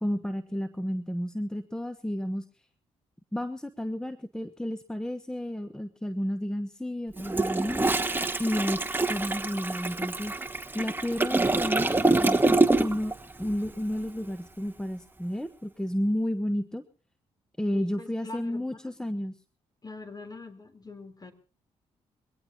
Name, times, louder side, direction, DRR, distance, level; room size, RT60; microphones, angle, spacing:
voice 1, 0.0-2.5 3.3-7.8 8.4-8.8 9.1-10.3 10.7-13.1 13.4-16.8 17.6-19.4, equal, 5° left, 11 dB, 1.1 m, -31 dB
Toilet flush, 7.2-13.1 13.4-13.7, right 2 dB, 15° right, 1.4 m, -26 dB
voice 2, 17.7-18.9 19.8-21.3, left 3 dB, 30° left, 8 dB, 3.6 m, -43 dB
22.5 x 17.5 x 2.9 m, 0.35 s
supercardioid pair, 55°, 13 cm